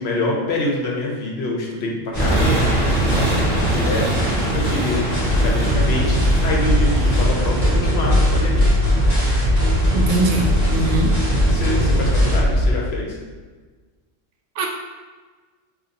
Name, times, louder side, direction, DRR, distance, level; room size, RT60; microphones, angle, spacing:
voice 1, 0.0-8.7 11.5-13.2, left 2 dB, 65° left, -1 dB, 0.8 m, -26 dB
sound 1, 2.1-12.4, equal, 35° left, 1.5 m, -25 dB
sound 2, 2.1-8.2, right 1 dB, 15° right, 1.1 m, -23 dB
sound 3, 5.2-12.7, equal, 55° right, 0.5 m, -19 dB
voice 2, 9.9-11.1 14.6-14.7, right 2 dB, 90° right, 1 dB, 1.0 m, -22 dB
2.7 x 2.7 x 3.9 m, 1.4 s
omnidirectional pair, 1.3 m